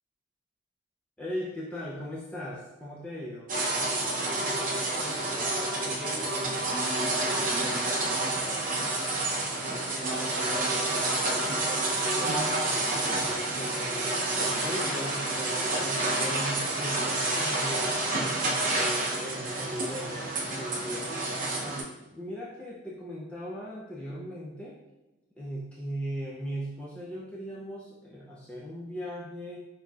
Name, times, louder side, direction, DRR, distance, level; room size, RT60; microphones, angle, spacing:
voice 1, 1.2-3.5 12.8-14.1 14.3-18.0 18.6-21.1 21.6-24.8 25.4-29.6, equal, 5° left, -6 dB, 0.5 m, -38 dB
sound 1, 3.5-21.8, right 2 dB, 45° right, 0.7 m, -29 dB
voice 2, 4.9-8.9 9.7-11.1 11.3-12.5, equal, 40° left, -2 dB, 0.8 m, -42 dB
5.8 x 2.8 x 2.4 m, 1.0 s
head